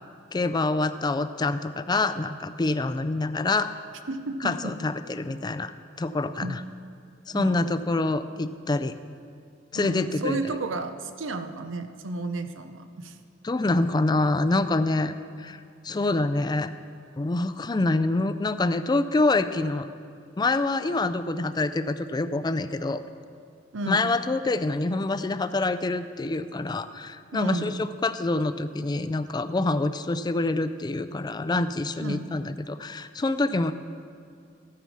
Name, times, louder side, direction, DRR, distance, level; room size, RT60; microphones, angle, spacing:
voice 1, 0.3-3.7 4.4-5.7 6.0-6.6 7.3-9.0 9.7-10.6 13.4-16.7 17.2-19.9 20.4-23.0 23.9-33.7, left 2 dB, 20° left, 12 dB, 0.4 m, -26 dB
voice 2, 4.1-4.8 6.4-6.6 7.3-7.8 9.7-13.2 23.7-24.2 27.3-27.9 32.0-32.3, right 2 dB, 85° right, 9 dB, 0.7 m, -32 dB
14.5 x 9.2 x 4.7 m, 2.3 s
head